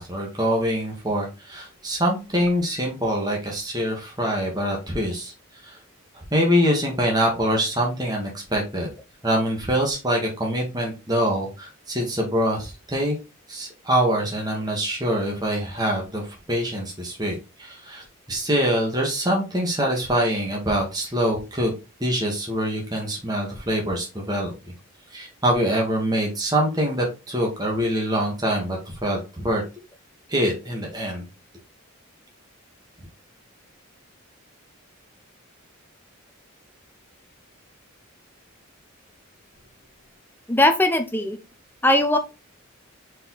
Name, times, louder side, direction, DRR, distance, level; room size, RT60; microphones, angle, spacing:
voice 1, 0.0-5.3 5.6-5.7 6.3-8.9 9.2-13.1 13.5-21.7 22.0-24.5 25.1-29.6 30.3-31.2, equal, 20° right, -1 dB, 1.8 m, -24 dB
voice 2, 40.5-41.4 41.8-42.2, left 1 dB, 10° left, 7 dB, 0.7 m, -19 dB
5.3 x 4.5 x 4.0 m, 0.28 s
head